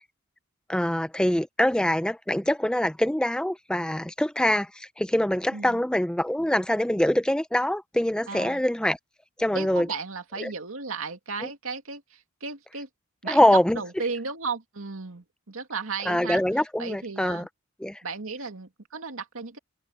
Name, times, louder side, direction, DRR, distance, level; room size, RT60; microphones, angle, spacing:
voice 1, 0.7-9.0 9.4-9.9 10.4-10.5 11.4-11.5 13.3-13.8 16.1-17.5 17.8-18.0, left 1 dB, 5° left, 0.5 m, -24 dB
voice 2, 5.5-5.8 8.3-8.6 9.5-12.9 13.2-16.4 16.8-17.5 18.0-19.6, right 4 dB, 85° right, 2.2 m, -34 dB
head